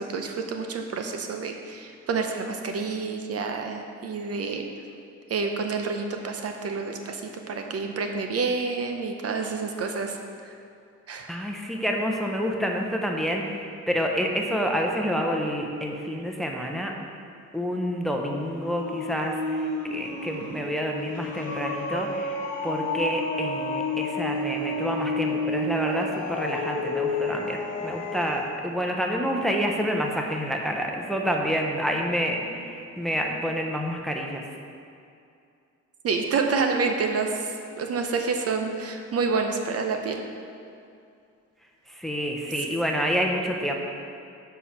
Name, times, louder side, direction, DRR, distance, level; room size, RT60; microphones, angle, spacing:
voice 1, 0.0-4.6 5.3-10.2 11.1-11.4 36.0-40.2, right 4 dB, 50° right, 4 dB, 0.7 m, -28 dB
voice 2, 11.3-16.9 17.5-22.4 22.6-34.4 41.9-43.8, equal, ahead, 1 dB, 0.8 m, -28 dB
sound 1, 18.0-28.5, left 2 dB, 85° left, 1.1 m, -30 dB
7.0 x 4.5 x 5.6 m, 2.5 s
cardioid pair, 90°, 30 cm